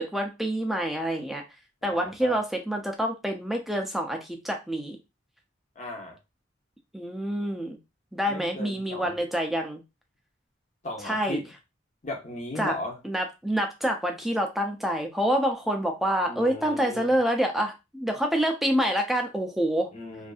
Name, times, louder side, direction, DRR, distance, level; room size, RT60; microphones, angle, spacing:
voice 1, 0.0-1.4 1.8-5.0 6.9-7.8 8.1-9.8 11.0-11.4 12.6-12.7 13.0-19.9, equal, ahead, 3 dB, 0.4 m, -27 dB
voice 2, 1.8-2.4 5.8-6.2 8.3-9.1 10.8-11.4 12.0-13.0 16.3-17.1 19.9-20.3, left 1 dB, 40° left, 1 dB, 0.7 m, -37 dB
2.6 x 2.4 x 2.3 m, 0.25 s
head